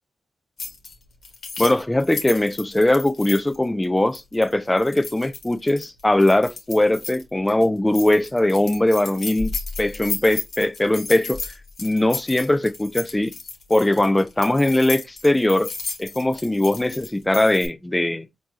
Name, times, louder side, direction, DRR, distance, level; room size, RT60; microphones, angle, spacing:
sound 1, 0.6-0.9 1.2-7.2 7.5-7.7 7.9-17.7, left 4 dB, 60° left, 1.4 m, -34 dB
voice 1, 1.6-11.4 11.8-13.3 13.7-15.7 16.0-18.3, left 1 dB, 15° left, 0.4 m, -20 dB
4.4 x 2.8 x 2.9 m
supercardioid pair, 50°, 0 cm